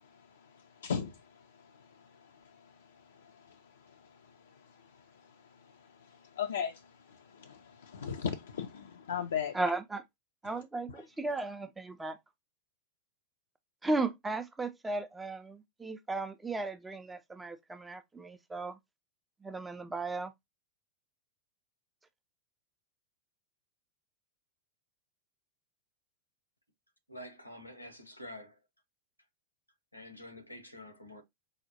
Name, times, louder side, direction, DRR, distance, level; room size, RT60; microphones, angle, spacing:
voice 1, 6.4-6.8 7.4-9.5, left 7 dB, 65° left, 0.4 m, -35 dB
voice 2, 9.5-10.0 10.4-12.2 13.8-18.8 19.4-20.3, right 2 dB, 10° right, 0.4 m, -35 dB
voice 3, 27.1-28.6 29.9-31.2, left 1 dB, 85° left, 0.8 m, -47 dB
4.8 x 2.1 x 2.7 m
figure-of-eight pair, 90°, 0 cm